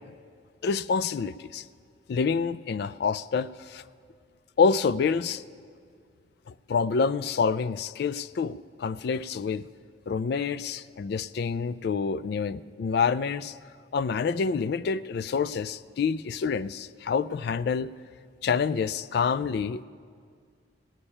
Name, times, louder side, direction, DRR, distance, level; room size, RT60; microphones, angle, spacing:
voice 1, 0.6-1.6 2.1-3.8 4.6-5.4 6.7-9.6 10.1-13.5 13.9-17.9 18.4-19.8, left 5 dB, 55° left, 17 dB, 0.3 m, -27 dB
16.5 x 7.1 x 9.8 m, 2.1 s
head